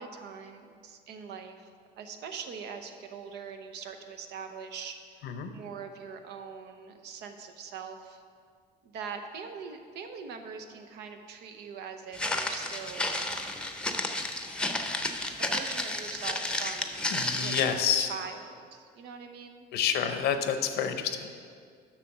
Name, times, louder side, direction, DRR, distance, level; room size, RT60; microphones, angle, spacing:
voice 1, 0.0-1.7 2.0-8.2 8.8-13.3 15.4-17.1 17.4-19.7, right 6 dB, 80° right, 6 dB, 0.8 m, -42 dB
Walk footsteps, 12.1-17.8, left 1 dB, 5° left, 0.7 m, -32 dB
voice 2, 17.1-18.1 19.7-21.3, left 8 dB, 75° left, 8 dB, 0.8 m, -28 dB
7.5 x 6.4 x 6.0 m, 2.2 s
cardioid pair, 110°, 17 cm